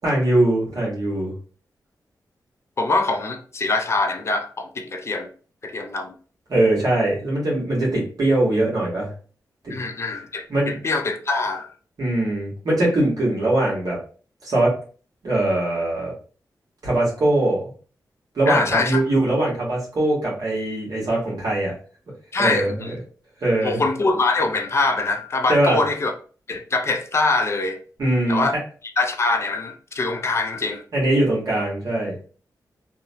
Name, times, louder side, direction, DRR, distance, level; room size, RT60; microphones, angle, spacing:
voice 1, 0.0-1.3 6.5-9.1 9.6-9.7 10.5-10.7 12.0-14.0 14.4-14.8 15.2-16.1 16.8-17.6 18.3-21.7 22.4-22.9 23.4-23.8 25.5-25.8 28.0-28.4 30.9-32.1, right 1 dB, 60° right, 1.3 m, -21 dB
voice 2, 2.8-5.3 5.6-6.1 9.7-11.7 18.5-19.0 22.3-22.9 23.6-26.1 26.5-27.8 28.3-28.6 29.0-30.8, left 3 dB, 40° left, 0.4 m, -23 dB
2.8 x 2.1 x 2.6 m
wide cardioid pair, 130°, 7 cm